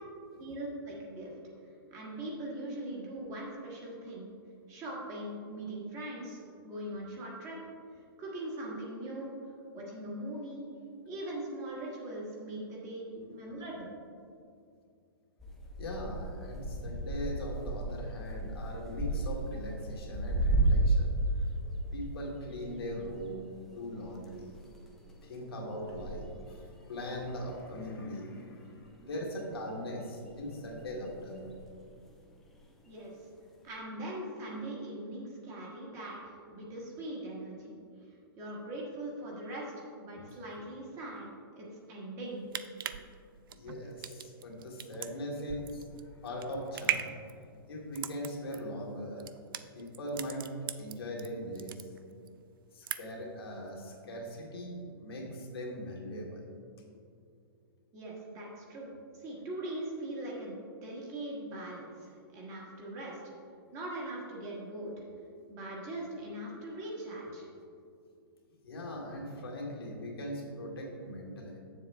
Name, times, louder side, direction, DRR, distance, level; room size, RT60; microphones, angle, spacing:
voice 1, 0.4-1.3 1.9-4.3 4.7-7.6 8.2-9.3 9.7-10.7 11.0-13.9 32.9-33.1 33.6-37.8 38.4-42.5 57.9-63.2 63.7-64.9 65.5-67.5, right 1 dB, 25° right, -3 dB, 1.4 m, -41 dB
voice 2, 13.2-13.6 15.8-21.5 21.9-23.5 23.7-24.6 25.2-31.6 40.6-40.7 43.5-47.4 47.7-49.3 49.7-50.4 50.8-51.9 52.7-56.5 56.9-57.0 65.1-65.2 65.9-66.0 68.6-71.6, equal, 85° left, -1 dB, 1.8 m, -40 dB
sound 1, 15.4-21.2 21.5-28.6 28.8-29.6 30.3-32.1 32.6-33.0 33.7-33.8, right 2 dB, 5° left, 0.5 m, -34 dB
sound 2, 42.2-51.3 51.6-52.3 52.6-53.3 53.7-53.8, right 10 dB, 65° right, 0.4 m, -38 dB
7.5 x 7.0 x 3.3 m, 2.4 s
hypercardioid pair, 160°, 13 cm